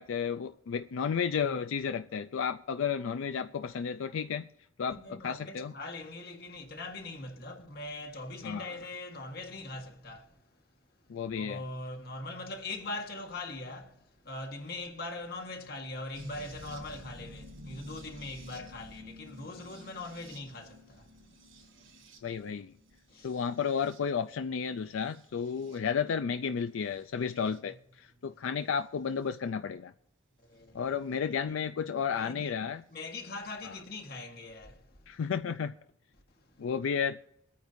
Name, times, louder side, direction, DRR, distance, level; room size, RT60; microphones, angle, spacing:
voice 1, 0.0-4.5 4.8-5.7 8.4-8.8 11.1-11.6 22.2-22.7 23.2-29.9 30.7-32.8 33.6-33.7 35.1-35.7 36.6-37.2, left 6 dB, 85° left, 0.4 m, -32 dB
voice 2, 4.9-10.4 11.3-21.1 21.6-21.7 23.1-23.3 27.7-27.8 28.2-28.4 30.4-30.9 31.5-31.6 32.1-35.2 36.4-36.5, left 2 dB, 55° left, 1.5 m, -42 dB
sound 1, 16.1-24.3 25.0-25.8 26.9-27.6 29.3-29.4 31.1-31.2, equal, 80° right, 3.1 m, -51 dB
23.0 x 9.3 x 2.7 m
head